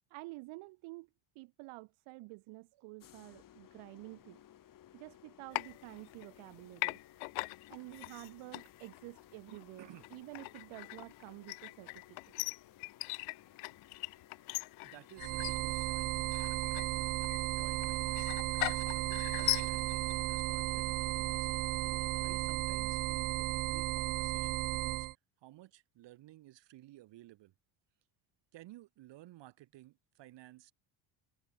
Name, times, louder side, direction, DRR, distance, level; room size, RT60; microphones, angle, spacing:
voice 1, 0.1-1.1 1.3-4.4 4.9-7.0 7.7-12.2, right 24 dB, 85° right, 3.0 m, -50 dB
sound 1, 3.0-22.5, left 11 dB, 45° left, 2.6 m, -60 dB
sound 2, 5.5-6.5 6.8-20.1, left 29 dB, 85° left, 0.8 m, -41 dB
voice 2, 9.5-10.1 14.8-16.2 16.9-17.1 17.6-20.9 21.2-21.5 22.2-25.1 25.4-27.5 28.5-30.7, right 16 dB, 60° right, 7.3 m, -55 dB
sound 3, 15.2-25.1, right 18 dB, 45° right, 0.5 m, -34 dB
cardioid pair, 150°, 47 cm